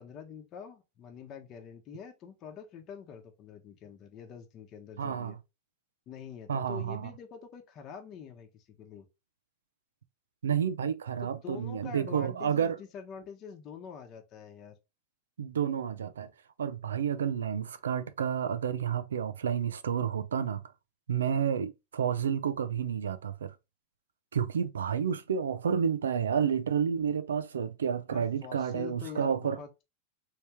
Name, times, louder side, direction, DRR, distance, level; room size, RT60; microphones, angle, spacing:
voice 1, 0.0-5.4 6.1-9.1 11.2-14.7 28.1-29.7, left 7 dB, 40° left, 0.9 m, -45 dB
voice 2, 5.0-5.3 6.5-7.0 10.4-12.8 15.4-16.3 16.6-20.6 21.1-23.5 24.3-29.6, right 7 dB, 90° right, 0.4 m, -30 dB
3.4 x 2.9 x 2.9 m
hypercardioid pair, 105°, 0 cm